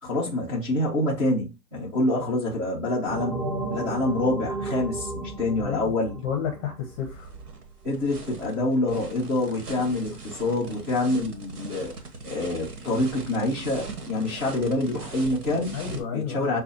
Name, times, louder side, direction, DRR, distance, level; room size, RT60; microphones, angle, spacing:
voice 1, 0.0-6.2 7.8-11.9 12.2-15.8 16.1-16.6, left 2 dB, 5° right, 0.4 m, -26 dB
sound 1, 3.1-7.5, right 3 dB, 30° right, 1.2 m, -34 dB
voice 2, 5.6-5.9 6.2-7.3 15.7-16.5, left 8 dB, 20° left, 0.7 m, -31 dB
sound 2, 6.9-16.0, right 4 dB, 70° right, 1.5 m, -40 dB
6.4 x 2.3 x 2.7 m
hypercardioid pair, 140°, 47 cm